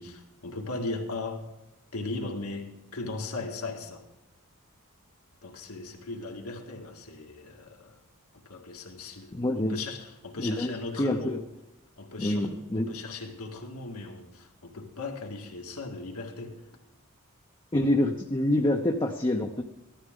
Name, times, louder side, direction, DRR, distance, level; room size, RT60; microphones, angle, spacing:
voice 1, 0.0-1.4 1.9-4.1 5.4-8.0 8.5-9.4 9.7-11.4 12.0-16.6, left 3 dB, 80° left, 1.9 m, -38 dB
voice 2, 9.3-9.8 10.4-11.4 12.2-13.0 17.7-19.6, left 1 dB, 20° left, 0.7 m, -27 dB
15.5 x 13.0 x 3.8 m
head